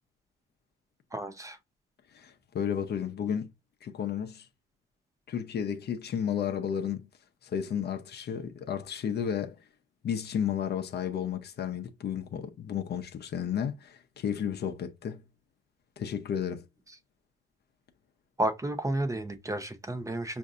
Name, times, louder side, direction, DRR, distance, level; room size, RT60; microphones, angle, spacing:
voice 1, 1.1-1.6 18.4-20.4, right 1 dB, 15° right, 0.7 m, -31 dB
voice 2, 2.1-3.5 3.8-4.4 5.3-7.1 7.4-9.6 10.0-15.2 16.0-16.7, left 8 dB, 55° left, 0.7 m, -32 dB
5.2 x 2.6 x 2.5 m
cardioid pair, 90°, 20 cm